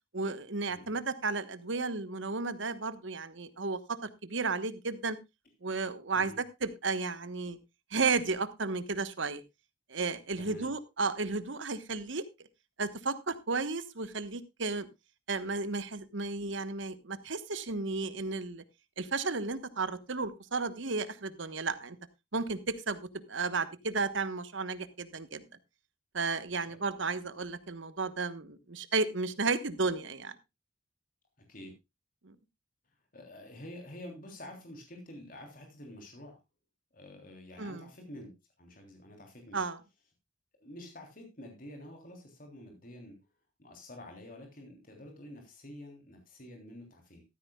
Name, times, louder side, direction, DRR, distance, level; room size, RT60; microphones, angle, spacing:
voice 1, 0.1-5.2 5.6-7.6 7.9-9.4 9.9-12.2 12.8-14.9 15.3-18.6 19.0-22.0 22.3-25.4 26.1-30.3 32.2-32.3 37.6-37.9 39.5-39.8, right 4 dB, 70° right, 13 dB, 1.2 m, -33 dB
voice 2, 10.4-10.8 26.7-26.8 31.5-31.7 33.1-36.4 36.9-38.3 38.6-39.6 40.6-43.2 43.6-47.2, left 1 dB, 45° left, 3 dB, 3.3 m, -48 dB
14.5 x 13.0 x 2.3 m, 0.23 s
head